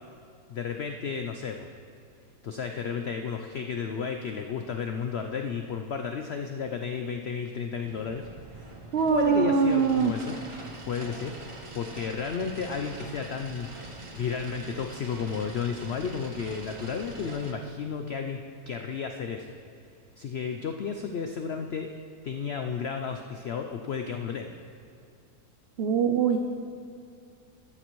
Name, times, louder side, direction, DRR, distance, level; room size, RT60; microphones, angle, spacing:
voice 1, 0.5-1.7 2.4-8.3 8.5-8.7 9.1-10.4 10.8-18.4 18.7-19.5 20.2-22.0 22.2-24.5, left 6 dB, 85° left, 5 dB, 0.5 m, -33 dB
sound 1, 7.8-17.5, right 2 dB, 35° right, 0.5 m, -44 dB
voice 2, 8.9-10.1 25.8-26.4, right 6 dB, 90° right, 5 dB, 0.5 m, -23 dB
12.5 x 12.0 x 3.1 m, 2.5 s
omnidirectional pair, 1.8 m